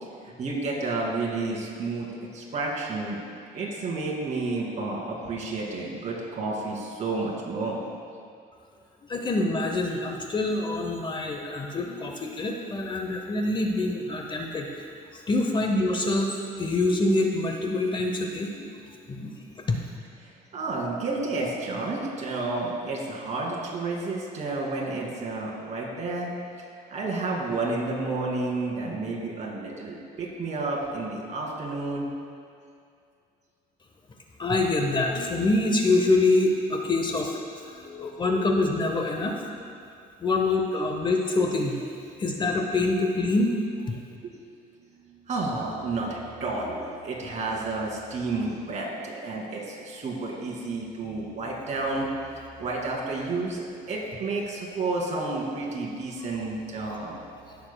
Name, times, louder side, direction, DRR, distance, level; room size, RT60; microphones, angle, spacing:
voice 1, 0.4-2.1 2.3-3.2 3.5-7.8 20.2-26.3 26.9-32.0 37.7-38.1 44.2-44.3 44.9-52.1 52.6-57.2, right 3 dB, 45° right, -3 dB, 2.1 m, -31 dB
voice 2, 9.0-14.7 15.1-16.3 16.6-18.8 19.1-19.3 19.7-19.8 34.4-37.4 37.8-39.4 40.2-41.8 42.2-43.5, left 2 dB, 30° left, 2 dB, 0.7 m, -25 dB
16.0 x 6.9 x 2.2 m, 2.4 s
cardioid pair, 110°, 17 cm